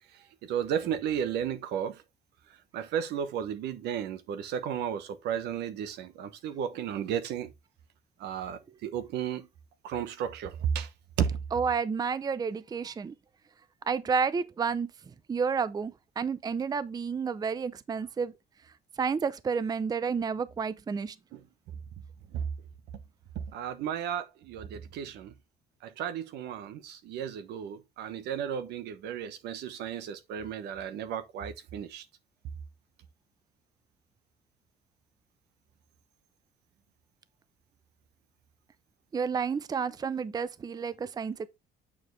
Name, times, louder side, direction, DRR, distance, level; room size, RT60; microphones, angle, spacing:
voice 1, 0.1-2.0 2.7-7.5 8.2-9.5 9.8-10.9 11.2-11.4 21.3-21.4 22.3-22.5 23.3-25.3 25.8-32.0, right 8 dB, 80° right, 1.1 m, -33 dB
voice 2, 11.5-13.1 13.9-14.9 15.3-18.3 19.0-21.1 39.1-41.5, right 5 dB, 25° right, 0.5 m, -30 dB
8.7 x 4.9 x 3.2 m
cardioid pair, 110°, 17 cm